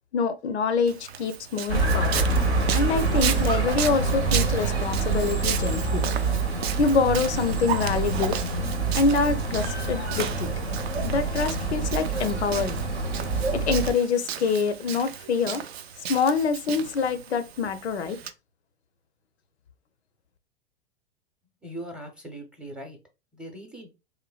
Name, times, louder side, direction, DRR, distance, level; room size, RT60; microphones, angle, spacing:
voice 1, 0.1-2.3 2.7-6.0 6.8-8.4 8.9-10.5 11.0-12.8 13.5-15.6 16.1-18.2, left 5 dB, 85° left, 0.5 m, -25 dB
Walk footsteps, 0.9-18.3, right 9 dB, 70° right, 0.4 m, -35 dB
sound 1, 1.7-13.9, right 3 dB, 85° right, 0.9 m, -26 dB
voice 2, 21.6-23.0 23.3-23.9, right 1 dB, 5° right, 0.6 m, -40 dB
3.1 x 2.2 x 2.3 m
figure-of-eight pair, 100°, 32 cm